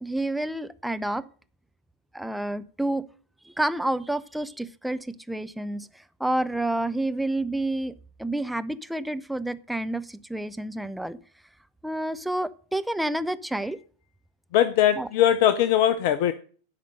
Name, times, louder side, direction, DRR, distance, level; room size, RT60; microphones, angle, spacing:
voice 1, 0.0-1.3 2.1-3.1 3.4-11.2 11.8-13.8 15.0-15.1, right 1 dB, ahead, 11 dB, 0.5 m, -29 dB
voice 2, 14.5-16.3, left 11 dB, 50° left, 14 dB, 0.5 m, -20 dB
12.0 x 5.1 x 6.5 m, 0.43 s
figure-of-eight pair, 90°, 0 cm